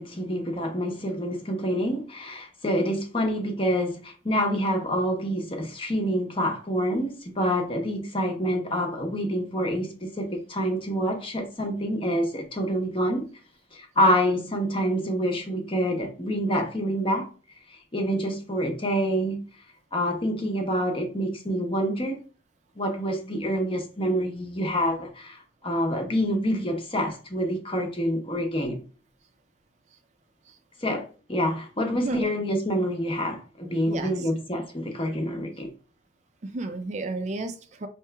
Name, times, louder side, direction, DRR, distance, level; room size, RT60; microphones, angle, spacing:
voice 1, 0.0-13.3 13.7-17.3 17.7-19.4 19.9-22.2 22.8-28.8 30.8-35.7, equal, 30° left, 0.8 m, -27 dB
voice 2, 31.9-32.3 33.9-34.3 36.4-37.9, right 2 dB, 40° right, 0.4 m, -32 dB
5.6 x 2.9 x 2.2 m
head